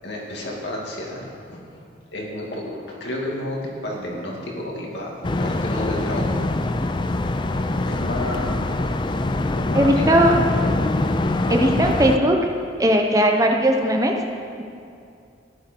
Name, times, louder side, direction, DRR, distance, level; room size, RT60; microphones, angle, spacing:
voice 1, 0.0-1.8 2.1-5.1 5.4-6.5 7.9-8.6 9.6-10.4, left 1 dB, 70° left, -2 dB, 2.5 m, -31 dB
sound 1, 5.2-12.2, left 2 dB, 25° left, 0.4 m, -23 dB
voice 2, 9.7-10.4 11.5-12.5 12.8-14.1, equal, 20° right, 2 dB, 0.8 m, -18 dB
15.0 x 10.5 x 4.6 m, 2.5 s
head